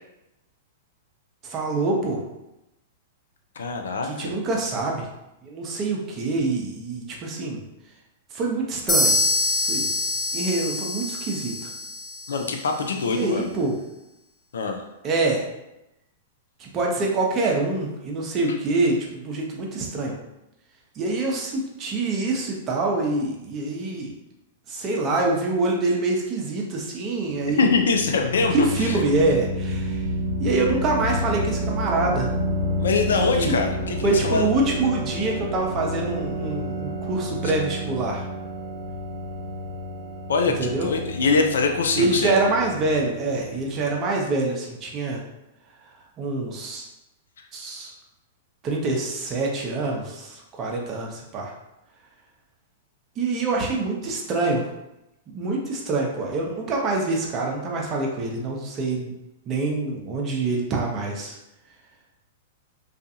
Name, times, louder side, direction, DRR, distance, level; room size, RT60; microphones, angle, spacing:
voice 1, 1.4-2.2 4.0-5.1 5.4-7.6 8.3-9.2 9.7-9.9 10.3-11.7 13.0-13.7 15.0-15.5 16.6-20.1 21.0-24.1 24.7-27.7 28.5-30.0 30.4-32.3 33.2-33.6 34.0-38.3 40.6-40.9 42.0-45.2 46.2-46.8 47.5-47.9 48.6-51.5 53.2-54.7 55.3-59.1 59.5-61.4, right 2 dB, 35° right, -1 dB, 0.7 m, -25 dB
voice 2, 3.6-4.3 12.3-13.5 14.5-14.8 27.6-29.0 32.8-34.6 37.4-37.5 40.3-42.4, left 4 dB, 75° left, 4 dB, 0.4 m, -23 dB
sound 1, 8.9-12.6, left 1 dB, 20° left, 0.6 m, -25 dB
sound 2, 27.6-44.0, equal, 60° left, 1.1 m, -30 dB
2.4 x 2.4 x 2.7 m, 0.90 s
hypercardioid pair, 105°, 0 cm